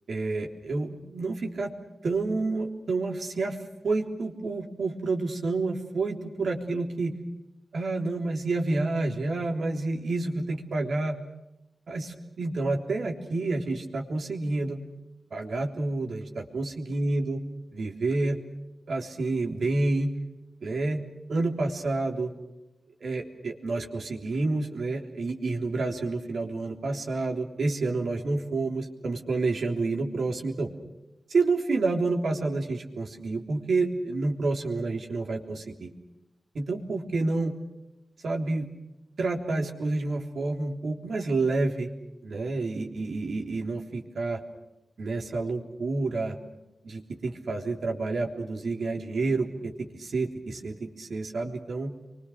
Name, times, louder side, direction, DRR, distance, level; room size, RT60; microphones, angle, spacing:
voice 1, 0.1-1.7 2.0-7.2 7.7-11.2 11.9-14.8 15.3-17.4 17.7-18.4 18.9-20.1 20.6-21.0 21.3-22.3 23.0-30.7 31.3-35.9 36.6-37.5 38.2-38.7 39.2-41.9 42.2-44.4 45.0-46.4 46.8-51.9, right 3 dB, 85° right, 2 dB, 3.5 m, -29 dB
29.5 x 24.5 x 6.5 m, 0.93 s
wide cardioid pair, 80°, 0 cm